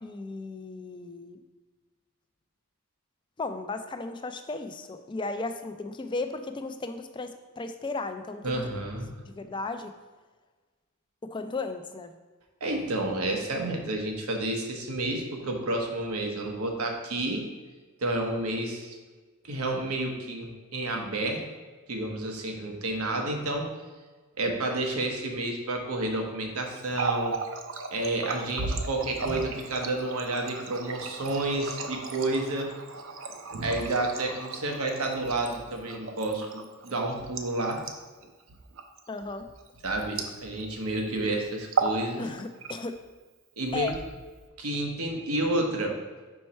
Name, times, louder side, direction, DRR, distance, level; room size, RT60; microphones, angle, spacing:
voice 1, 0.0-1.4 3.4-8.7 9.3-9.9 11.2-12.1 39.1-39.5 42.2-43.0 43.7-43.9, left 3 dB, 20° left, 8 dB, 0.3 m, -35 dB
voice 2, 8.4-9.1 12.6-17.4 18.0-18.9 19.4-21.4 21.9-23.7 24.4-27.4 27.9-32.7 33.6-37.8 39.8-42.2 43.6-44.0 44.6-46.0, right 2 dB, 90° right, 2 dB, 1.0 m, -30 dB
Water tap faucet, 26.8-40.8 41.1-41.3 41.6-42.0 42.4-43.0 43.7-44.5, right 4 dB, 60° right, 0.6 m, -35 dB
5.4 x 4.5 x 4.3 m, 1.3 s
head